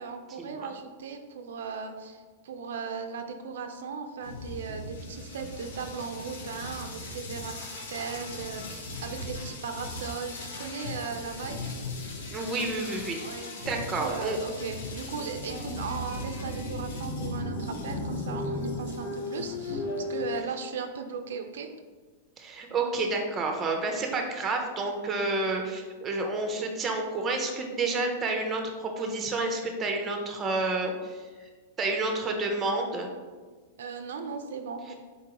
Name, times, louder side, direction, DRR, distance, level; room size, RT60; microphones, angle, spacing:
voice 1, 0.0-7.5 7.9-11.7 13.2-21.7 33.8-34.9, right 5 dB, 85° right, 6 dB, 0.4 m, -37 dB
sound 1, 4.2-20.4, left 2 dB, 85° left, 0.8 m, -37 dB
voice 2, 12.3-13.2 13.7-14.4 22.4-31.3 31.8-33.1, right 3 dB, 20° right, 3 dB, 0.5 m, -30 dB
4.0 x 3.7 x 2.9 m, 1.4 s
supercardioid pair, 150°, 0 cm